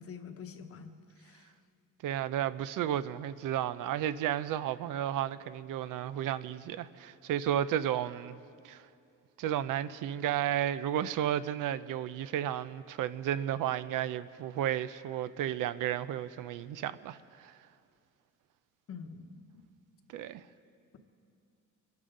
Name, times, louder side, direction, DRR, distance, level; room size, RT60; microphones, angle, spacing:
voice 1, 0.0-1.5 18.9-19.7, left 6 dB, 45° left, 1.0 m, -46 dB
voice 2, 2.0-8.4 8.6-8.8 9.4-17.6 20.1-20.4, right 11 dB, 75° right, 0.5 m, -33 dB
24.0 x 11.5 x 3.8 m
cardioid pair, 155°, 32 cm